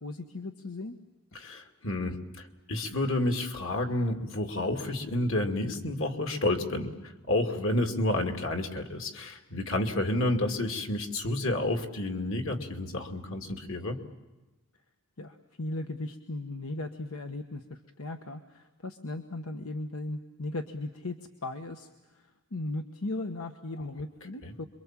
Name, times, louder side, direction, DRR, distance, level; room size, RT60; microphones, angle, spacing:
voice 1, 0.0-0.9 15.2-21.9 22.1-22.2 22.5-24.7, left 2 dB, 90° left, 6 dB, 1.3 m, -37 dB
voice 2, 1.3-14.0 24.4-24.5, left 1 dB, 65° left, 4 dB, 2.5 m, -30 dB
27.0 x 23.5 x 7.5 m, 1.1 s
head